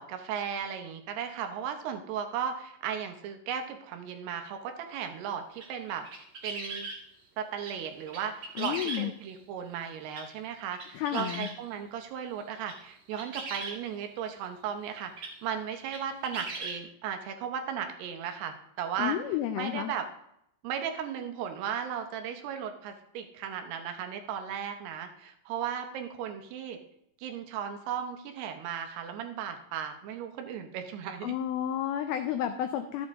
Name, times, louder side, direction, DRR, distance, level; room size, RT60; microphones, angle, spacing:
voice 1, 0.0-6.0 6.4-6.9 7.4-19.2 19.6-20.1 20.6-26.8 27.2-31.3, right 8 dB, 75° right, 6 dB, 2.9 m, -36 dB
sound 1, 5.0-5.1 5.5-7.0 7.6-7.8 8.1-9.3 10.1-10.3 10.7-11.6 12.4-12.8 13.1-13.8 14.8-14.9 15.2-15.3 15.8-16.8, right 3 dB, 50° right, 1.5 m, -39 dB
voice 2, 8.6-9.1 10.9-11.5 19.0-19.9 31.2-33.1, left 11 dB, 85° left, 8 dB, 2.1 m, -31 dB
13.0 x 8.6 x 3.6 m, 0.76 s
omnidirectional pair, 5.0 m